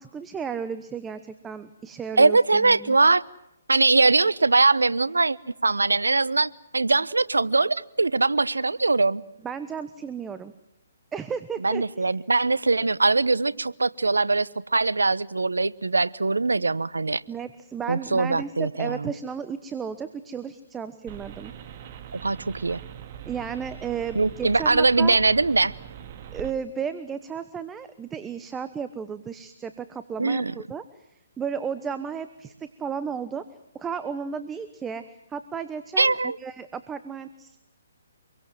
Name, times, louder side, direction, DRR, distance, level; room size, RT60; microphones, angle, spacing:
voice 1, 0.0-3.0 9.4-10.5 11.1-12.2 17.3-21.5 23.2-25.2 26.3-30.8 31.4-33.5 33.7-37.6, right 6 dB, 15° right, 12 dB, 1.1 m, -34 dB
voice 2, 2.2-3.2 3.7-5.4 5.6-9.2 11.6-17.2 17.9-19.1 22.1-22.8 24.1-25.7 30.2-30.5 36.0-36.4, right 3 dB, 85° right, 20 dB, 0.9 m, -22 dB
sound 1, 21.1-26.5, right 9 dB, 40° right, 2.1 m, -42 dB
26.0 x 23.0 x 7.7 m, 0.87 s
figure-of-eight pair, 135°, 0 cm